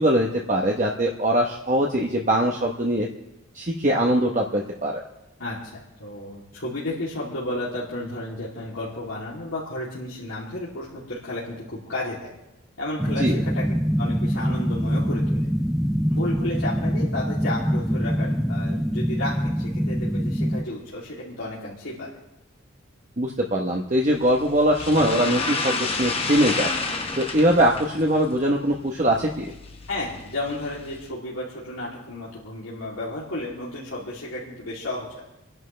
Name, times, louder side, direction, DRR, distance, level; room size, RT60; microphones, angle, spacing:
voice 1, 0.0-3.1 3.5-4.9 13.2-13.4 23.2-26.7 27.2-29.5, right 1 dB, 35° right, 0 dB, 1.1 m, -22 dB
voice 2, 6.0-12.3 12.8-13.6 14.0-15.5 16.1-22.1 29.9-35.1, left 1 dB, 90° left, -8 dB, 3.0 m, -32 dB
sound 1, 13.0-20.6, equal, ahead, 0.4 m, -24 dB
sound 2, 24.1-31.1, left 3 dB, 30° left, 1.1 m, -31 dB
30.0 x 10.5 x 3.4 m, 0.95 s
head